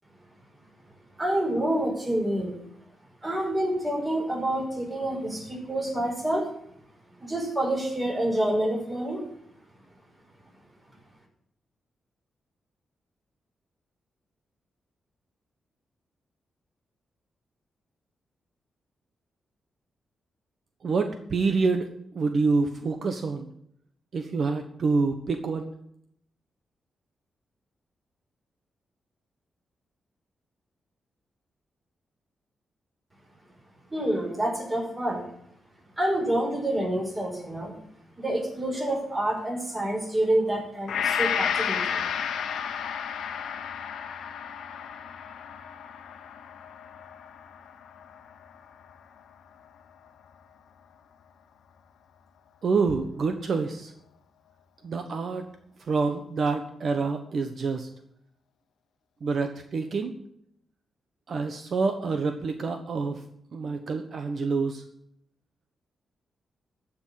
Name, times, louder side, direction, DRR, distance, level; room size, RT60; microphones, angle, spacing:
voice 1, 1.2-2.6 3.2-6.5 7.2-9.3 33.9-35.2 36.0-37.7 38.2-42.4, right 1 dB, 20° right, -1 dB, 5.8 m, -28 dB
voice 2, 20.8-21.9 22.1-23.5 24.1-25.7 52.6-53.9 54.8-55.4 55.8-57.9 59.2-60.1 61.3-63.2 63.5-64.8, right 4 dB, 60° right, 6 dB, 1.2 m, -27 dB
Gong, 40.9-49.2 49.6-49.7, left 8 dB, 90° left, 1.1 m, -32 dB
14.0 x 6.4 x 8.9 m, 0.73 s
cardioid pair, 85°, 0 cm